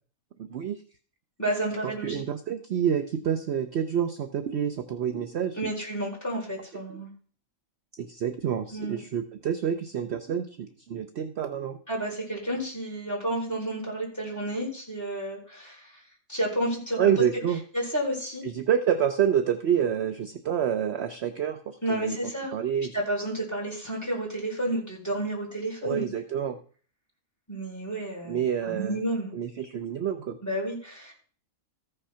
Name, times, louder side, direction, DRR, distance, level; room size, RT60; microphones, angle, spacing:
voice 1, 0.4-0.8 1.8-5.6 6.9-7.0 7.9-11.8 17.0-17.6 18.4-22.2 22.5-23.0 25.8-26.6 28.3-29.0 29.3-30.4, right 8 dB, 55° right, 9 dB, 0.9 m, -28 dB
voice 2, 1.4-2.2 5.5-7.1 8.7-9.0 11.9-16.0 16.3-17.1 17.7-18.4 21.8-22.5 22.9-26.1 27.5-29.3 30.4-31.1, right 1 dB, 10° left, -4 dB, 4.6 m, -31 dB
14.5 x 5.6 x 5.7 m, 0.43 s
omnidirectional pair, 1.5 m